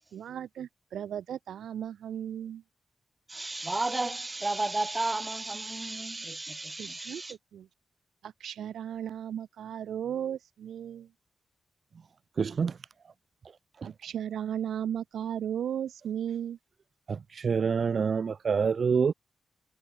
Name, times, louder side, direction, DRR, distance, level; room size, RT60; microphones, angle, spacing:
voice 1, 0.1-2.6 6.8-7.7 8.2-11.1 13.8-16.6, right 9 dB, 90° right, 1.0 m, -35 dB
voice 2, 3.3-7.4, right 2 dB, 25° right, 4.6 m, -32 dB
voice 3, 12.4-12.8 13.8-13.9 17.1-19.1, right 6 dB, 60° right, 0.6 m, -27 dB
cardioid pair, 55°, 0 cm